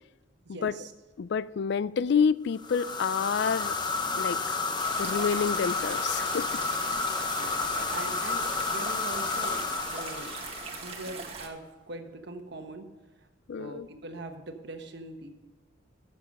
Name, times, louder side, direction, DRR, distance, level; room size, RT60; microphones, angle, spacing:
voice 1, 0.4-0.9 7.3-12.9 13.6-15.3, right 2 dB, 60° right, 1.3 m, -42 dB
voice 2, 1.2-3.8 4.2-4.6 5.0-6.6 13.5-13.9, left 6 dB, 60° left, 0.4 m, -28 dB
sound 1, 2.6-11.1, left 4 dB, 20° left, 0.8 m, -31 dB
sound 2, 4.8-11.5, right 4 dB, 30° right, 1.5 m, -40 dB
13.5 x 7.1 x 5.3 m
head